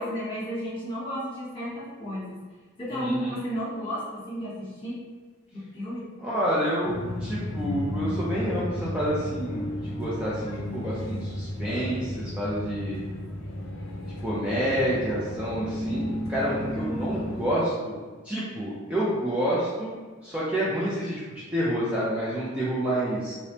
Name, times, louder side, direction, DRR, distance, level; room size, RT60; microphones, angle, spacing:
voice 1, 0.0-2.4 2.8-5.0 5.7-6.1, equal, 25° left, -9 dB, 1.3 m, -32 dB
voice 2, 2.9-3.3 6.2-13.0 14.0-20.0 20.2-23.3, equal, 5° right, -8 dB, 0.5 m, -28 dB
sound 1, 6.9-17.5, left 1 dB, 75° left, 0.6 m, -33 dB
3.3 x 2.9 x 2.8 m, 1.4 s
head